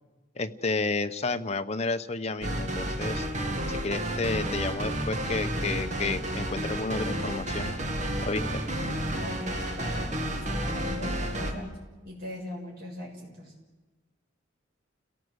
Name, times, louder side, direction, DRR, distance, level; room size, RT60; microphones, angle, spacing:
voice 1, 0.4-3.3 3.7-7.7 8.2-8.6, left 3 dB, 35° left, 8 dB, 0.9 m, -31 dB
sound 1, 2.4-11.5, right 1 dB, 40° right, 2.1 m, -31 dB
voice 2, 9.2-11.7 12.1-13.5, equal, 55° right, -1 dB, 6.7 m, -40 dB
29.5 x 17.5 x 8.0 m, 1.2 s
head